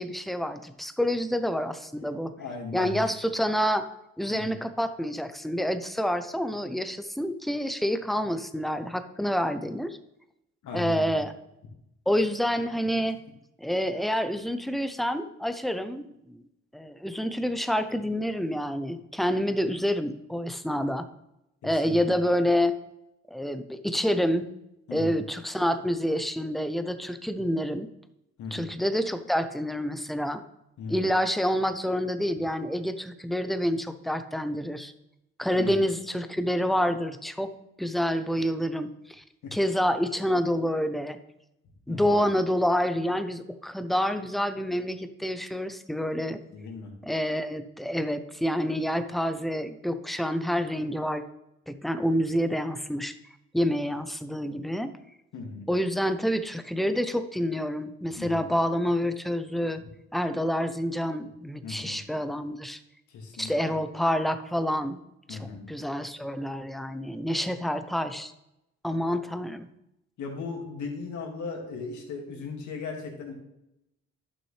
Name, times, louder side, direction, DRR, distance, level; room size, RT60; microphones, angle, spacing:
voice 1, 0.0-2.3 2.7-3.9 4.2-10.0 10.7-11.3 12.1-13.2 13.6-16.4 16.7-21.1 21.6-22.7 23.3-24.5 24.9-27.9 28.5-30.4 30.9-34.9 35.4-37.5 37.8-39.2 39.5-41.2 41.9-46.4 47.0-51.2 51.7-53.2 53.5-54.9 55.7-59.8 60.1-62.8 63.4-65.0 65.3-65.4 65.7-68.3 68.8-69.7, equal, ahead, 10 dB, 0.6 m, -28 dB
voice 2, 2.3-3.0 4.3-4.6 10.6-11.2 21.6-22.0 24.9-25.2 28.4-28.8 30.8-31.1 35.5-35.8 39.4-39.5 41.9-42.2 46.5-46.9 55.3-55.7 58.2-58.4 59.8-59.9 61.6-62.0 63.1-63.5 65.3-65.7 70.2-73.3, left 4 dB, 75° left, 1 dB, 2.1 m, -37 dB
11.0 x 6.2 x 3.3 m, 0.86 s
cardioid pair, 90°, 30 cm